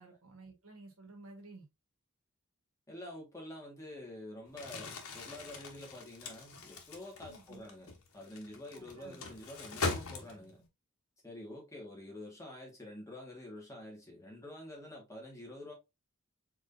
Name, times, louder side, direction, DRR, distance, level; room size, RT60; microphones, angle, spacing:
voice 1, 0.0-1.6 7.3-7.7 8.7-9.2, right 2 dB, 80° right, 1.7 m, -53 dB
voice 2, 2.9-10.6 11.2-15.7, left 1 dB, 15° left, 1.7 m, -48 dB
Crumpling crinkling, 4.5-10.7, left 3 dB, 80° left, 1.1 m, -41 dB
4.7 x 3.7 x 2.7 m
head